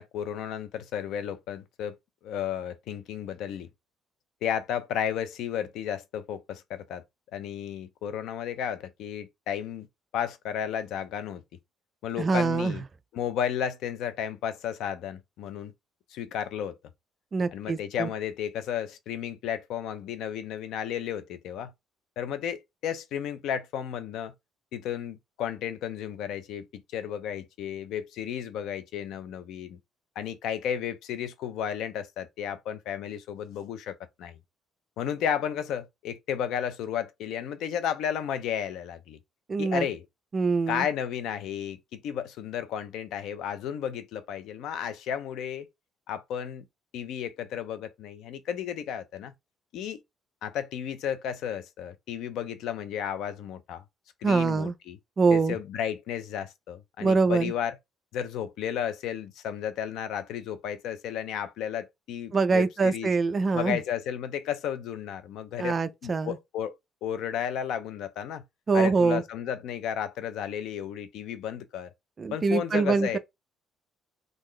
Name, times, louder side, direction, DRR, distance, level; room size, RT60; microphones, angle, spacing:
voice 1, 0.0-2.0 2.2-3.7 4.4-7.0 7.3-9.9 10.1-11.4 12.0-12.8 13.1-15.7 16.1-16.8 17.5-21.7 22.2-24.3 24.7-29.8 30.2-34.4 35.0-39.2 39.6-40.1 40.7-45.7 46.1-46.6 46.9-49.3 49.7-50.0 50.4-53.8 54.2-55.0 55.3-57.8 58.1-63.1 63.5-66.7 67.0-68.4 68.7-71.9 72.3-73.2, left 9 dB, 75° left, 0.5 m, -33 dB
voice 2, 12.2-12.8 17.3-18.1 39.5-39.9 40.3-40.9 54.2-54.7 55.2-55.6 57.0-57.5 62.3-63.8 65.6-66.4 68.7-69.2 72.2-73.2, right 4 dB, 30° right, 0.4 m, -24 dB
3.8 x 2.5 x 3.2 m
cardioid pair, 145°, 0 cm